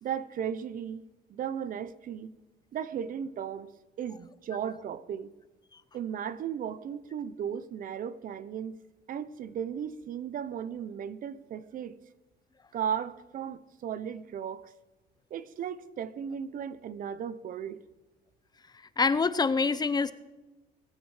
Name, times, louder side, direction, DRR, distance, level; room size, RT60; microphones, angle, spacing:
voice 1, 0.0-2.3 2.7-3.7 4.0-5.3 5.9-8.8 9.1-12.0 12.7-14.7 15.3-17.8, right 8 dB, 55° right, 0.9 m, -36 dB
voice 2, 19.0-20.1, left 4 dB, 25° left, 0.7 m, -25 dB
22.0 x 9.2 x 5.0 m
cardioid pair, 110°, 17 cm